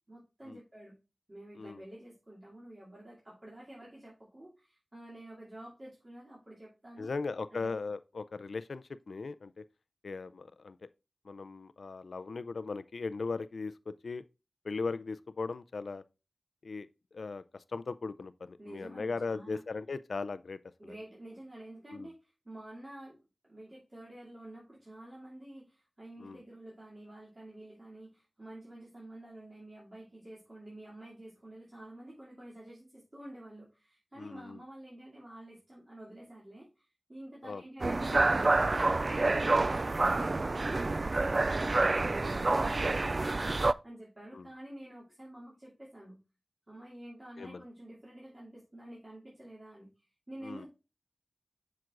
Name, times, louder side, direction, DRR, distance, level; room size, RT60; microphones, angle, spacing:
voice 1, 0.1-0.9 1.3-7.1 7.5-7.7 18.6-19.6 20.8-40.6 41.1-43.4 43.8-46.2 46.7-50.7, right 1 dB, 35° right, 2.7 m, -49 dB
voice 2, 7.0-9.6 10.0-10.8 11.3-14.2 14.6-16.0 16.6-16.9 17.1-17.4 17.7-20.6 21.9-22.1 26.2-26.4 34.2-34.6 37.4-37.6 44.3-44.4 47.4-47.6 50.4-50.7, left 4 dB, 90° left, 0.4 m, -38 dB
sound 1, 37.8-43.7, right 2 dB, 50° right, 0.3 m, -28 dB
7.7 x 5.9 x 2.5 m
wide cardioid pair, 70°, 0 cm